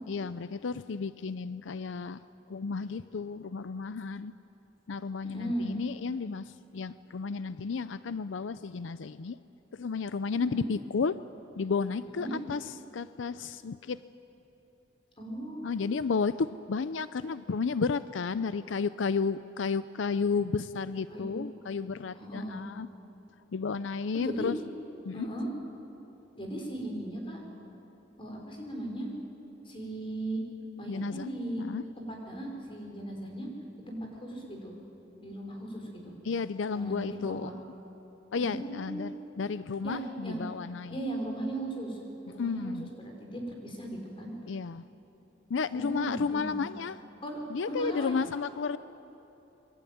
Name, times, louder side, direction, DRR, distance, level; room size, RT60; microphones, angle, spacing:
voice 1, 0.1-4.3 4.9-9.4 9.7-11.2 11.6-14.0 15.6-22.9 23.5-24.6 25.0-25.3 30.9-31.3 31.6-31.8 36.2-37.5 38.3-41.0 42.4-42.9 44.5-44.8 45.5-47.0 47.5-48.8, left 5 dB, 85° left, 14 dB, 0.5 m, -32 dB
voice 2, 5.3-5.8 10.3-10.7 12.2-12.4 15.2-15.9 21.1-21.4 22.2-22.6 24.1-24.5 25.1-25.5 26.3-27.4 28.2-29.1 29.7-30.4 30.8-31.6 32.0-33.5 33.9-34.8 35.2-36.1 36.7-37.5 38.3-39.1 39.8-40.4 40.9-42.0 42.3-44.3 45.7-46.6 47.2-47.4 47.7-48.2, right 1 dB, 30° left, 1 dB, 5.3 m, -37 dB
26.5 x 23.0 x 9.4 m, 3.0 s
head